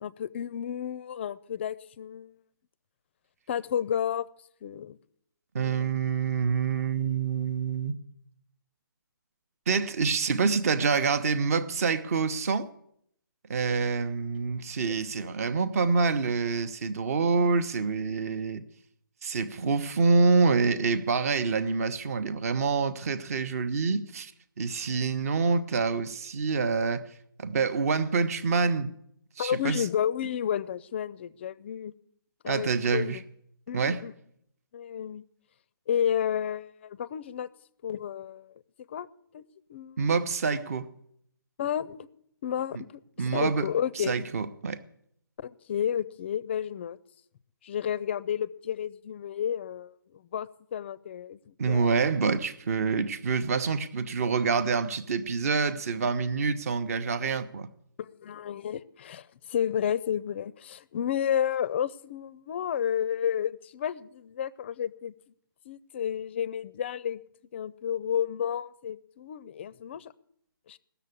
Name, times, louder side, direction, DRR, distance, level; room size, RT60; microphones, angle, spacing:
voice 1, 0.0-2.3 3.5-4.3 4.6-5.0 5.6-6.0 29.4-31.9 32.4-33.2 33.7-34.1 34.7-35.2 35.9-37.5 37.8-38.5 38.9-39.1 39.3-39.4 39.7-40.0 41.6-42.1 42.4-42.8 43.3-44.2 45.4-47.0 47.6-51.9 58.0-65.1 65.7-67.2 67.5-70.1 70.7-70.8, left 9 dB, 30° left, 0.4 m, -31 dB
voice 2, 5.5-7.9 9.7-12.7 13.5-18.6 19.2-24.3 24.6-27.1 27.4-28.9 29.4-29.8 32.5-33.2 33.7-34.0 40.0-40.9 43.2-43.7 44.0-44.8 51.6-57.7, right 4 dB, 40° right, 0.8 m, -26 dB
18.0 x 6.9 x 8.3 m
figure-of-eight pair, 150°, 12 cm